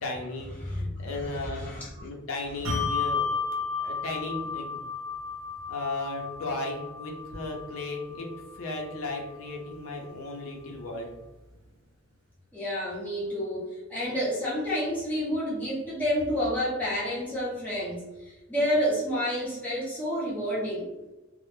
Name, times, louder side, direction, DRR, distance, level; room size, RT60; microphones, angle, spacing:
voice 1, 0.0-1.7 2.0-3.3 3.8-4.8 5.7-8.3 8.5-11.1, left 2 dB, 75° left, 0 dB, 0.5 m, -35 dB
voice 2, 1.2-1.9 12.5-20.9, equal, 10° left, -8 dB, 0.7 m, -29 dB
Bell, 2.6-9.5, left 5 dB, 70° right, 0.8 m, -33 dB
2.0 x 2.0 x 3.0 m, 1.1 s
head